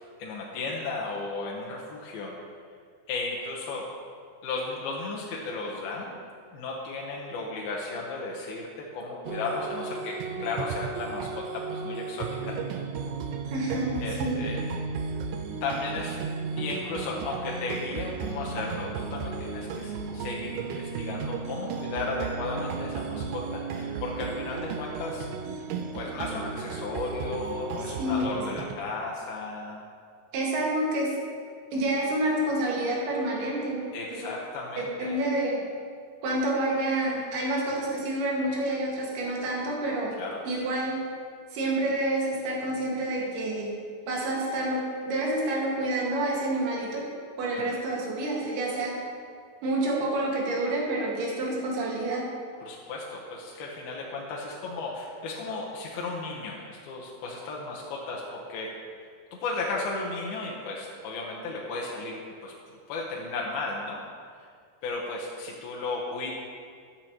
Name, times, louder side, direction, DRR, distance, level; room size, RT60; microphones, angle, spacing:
voice 1, 0.2-2.3 3.1-3.9 4.4-6.1 6.5-8.7 8.9-12.6 14.0-14.6 15.6-16.2 16.6-25.3 25.9-29.8 33.9-35.2 40.2-40.4 47.6-47.7 52.6-58.7 59.3-64.0 64.8-66.3, left 3 dB, 70° left, -3 dB, 2.8 m, -34 dB
sound 1, 9.3-28.8, right 5 dB, 90° right, 2.7 m, -34 dB
voice 2, 13.5-14.4 27.8-28.4 30.3-31.2 31.7-34.3 34.8-35.6 36.2-40.1 40.5-41.0 41.5-43.7 44.1-47.1 47.4-49.0 49.6-52.2, right 1 dB, 70° right, -3 dB, 3.9 m, -28 dB
13.5 x 11.5 x 3.0 m, 2.1 s
omnidirectional pair, 4.6 m